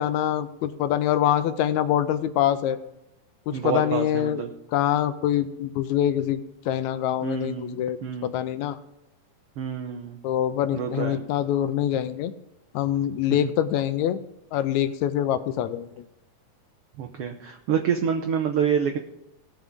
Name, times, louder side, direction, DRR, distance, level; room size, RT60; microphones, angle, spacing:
voice 1, 0.0-2.8 3.5-4.4 4.7-6.4 6.7-8.0 8.2-8.8 10.2-12.3 12.7-14.2 14.5-16.0, left 11 dB, 75° left, 12 dB, 1.8 m, -25 dB
voice 2, 3.5-4.5 7.2-8.3 9.6-10.2 10.7-11.2 17.0-19.0, right 7 dB, 90° right, 3 dB, 1.2 m, -27 dB
18.5 x 7.1 x 3.7 m, 0.87 s
omnidirectional pair, 3.6 m